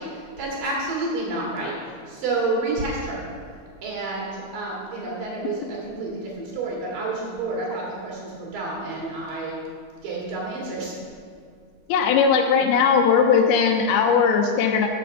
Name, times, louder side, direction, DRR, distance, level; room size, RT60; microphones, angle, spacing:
voice 1, 0.0-3.2 3.8-9.6 10.0-10.9, right 2 dB, 65° right, -4 dB, 3.5 m, -29 dB
voice 2, 11.9-14.9, left 6 dB, 85° left, 4 dB, 2.6 m, -19 dB
7.0 x 5.9 x 7.0 m, 2.2 s
omnidirectional pair, 4.4 m